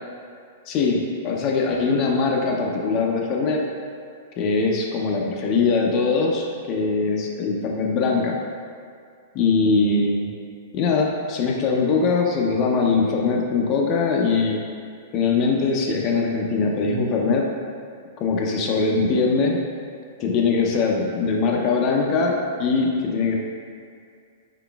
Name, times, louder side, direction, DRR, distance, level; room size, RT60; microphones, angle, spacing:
voice 1, 0.7-3.6 4.4-8.4 9.3-10.3 10.7-14.6 15.1-17.5 18.2-19.6 20.2-23.4, left 4 dB, 35° left, 0 dB, 0.5 m, -21 dB
4.7 x 3.8 x 2.3 m, 2.3 s
hypercardioid pair, 145°, 0 cm